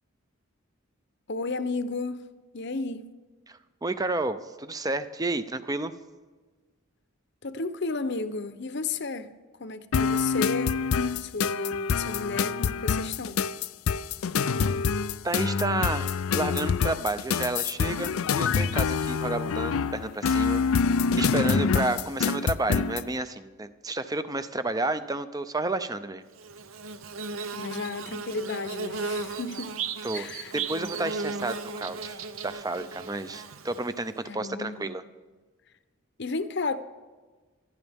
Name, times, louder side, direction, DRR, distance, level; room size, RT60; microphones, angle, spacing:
voice 1, 1.3-2.2 2.5-3.1 7.4-9.3 9.6-10.8 11.1-13.5 27.5-29.8 30.1-30.5 34.2-34.9 36.2-36.8, left 3 dB, 55° left, 0.8 m, -33 dB
voice 2, 3.5-5.9 15.2-26.2 30.0-30.3 30.5-35.0, right 2 dB, 15° right, 0.6 m, -31 dB
sound 1, 9.9-23.1, left 5 dB, 80° left, 0.4 m, -26 dB
Bird / Buzz, 26.4-34.1, right 4 dB, 70° right, 0.8 m, -35 dB
25.5 x 11.0 x 3.6 m
head